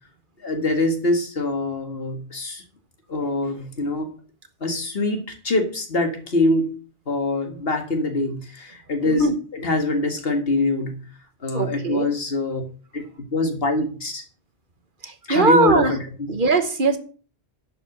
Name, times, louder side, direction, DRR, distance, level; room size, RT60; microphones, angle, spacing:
voice 1, 0.4-2.6 3.1-4.1 4.6-6.7 7.1-11.0 11.4-12.6 12.9-13.0 13.3-14.2 15.3-16.3, left 2 dB, 60° left, 4 dB, 2.1 m, -24 dB
voice 2, 9.0-9.3 11.5-12.1 15.0-15.9 16.3-17.0, right 3 dB, 50° right, 8 dB, 1.2 m, -20 dB
11.0 x 5.0 x 6.6 m, 0.39 s
omnidirectional pair, 1.1 m